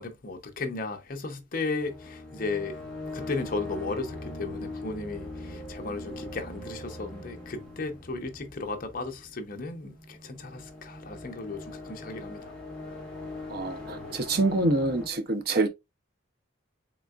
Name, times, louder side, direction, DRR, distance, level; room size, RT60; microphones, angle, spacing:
voice 1, 0.0-2.8 3.1-12.6, left 3 dB, 45° left, 0.6 m, -35 dB
sound 1, 1.8-15.1, left 2 dB, 5° left, 1.0 m, -41 dB
voice 2, 13.5-15.7, right 2 dB, 50° right, 0.6 m, -26 dB
3.8 x 3.4 x 2.3 m
head